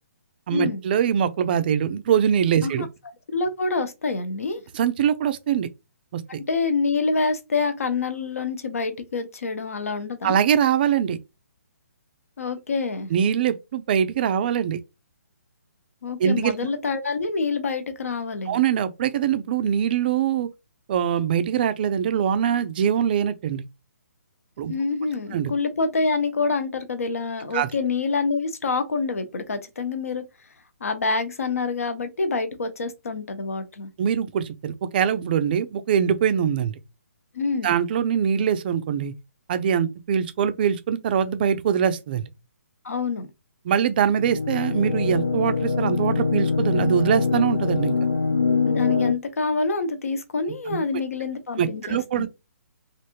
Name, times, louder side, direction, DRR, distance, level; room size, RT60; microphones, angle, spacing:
voice 1, 0.5-2.9 4.7-5.7 6.1-6.4 10.2-11.2 13.1-14.8 16.2-16.5 18.5-20.5 20.9-23.6 24.6-24.7 25.3-25.5 27.5-27.7 34.0-36.7 37.6-39.1 39.5-42.2 43.7-47.9 50.7-50.8 51.6-52.3, right 8 dB, 35° right, 0.4 m, -23 dB
voice 2, 3.3-4.6 6.5-10.4 12.4-13.1 16.0-18.6 24.7-30.2 30.8-33.9 37.3-37.7 42.8-43.3 48.7-52.3, left 4 dB, 65° left, 0.9 m, -26 dB
sound 1, 44.1-49.1, left 4 dB, 90° left, 1.0 m, -23 dB
3.3 x 2.6 x 2.8 m
figure-of-eight pair, 135°, 8 cm